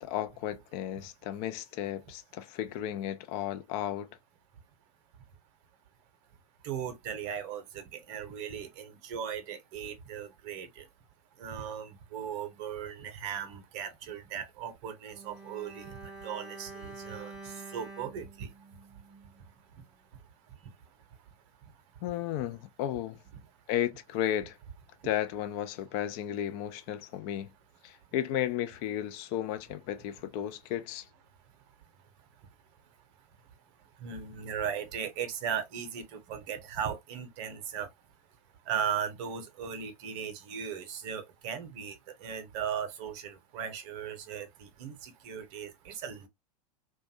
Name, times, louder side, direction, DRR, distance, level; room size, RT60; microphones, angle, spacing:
voice 1, 0.0-4.1 22.0-23.2 23.7-24.6 25.0-27.5 27.8-31.1, left 11 dB, 45° left, 0.4 m, -34 dB
voice 2, 6.6-10.9 11.4-15.9 16.2-18.5 34.0-37.9 38.7-42.0 42.2-46.3, right 8 dB, 50° right, 0.7 m, -37 dB
Bowed string instrument, 15.1-19.5 19.8-19.9, right 3 dB, 5° right, 0.5 m, -47 dB
2.5 x 2.2 x 2.6 m
figure-of-eight pair, 90°, 20 cm